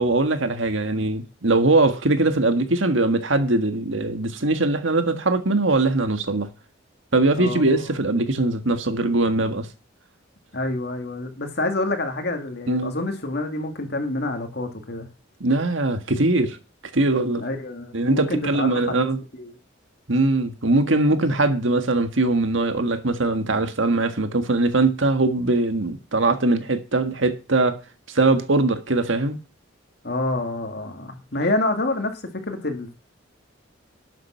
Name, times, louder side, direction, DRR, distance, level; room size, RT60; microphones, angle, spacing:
voice 1, 0.0-6.5 7.1-9.7 12.7-12.9 15.4-16.6 16.9-17.4 17.9-19.2 20.1-27.8 28.1-29.4, right 2 dB, 75° right, 1.7 m, -21 dB
voice 2, 7.3-7.8 10.5-15.1 17.4-19.1 19.3-19.6 30.0-32.9, left 2 dB, 55° left, 2.2 m, -27 dB
12.5 x 7.7 x 5.7 m
head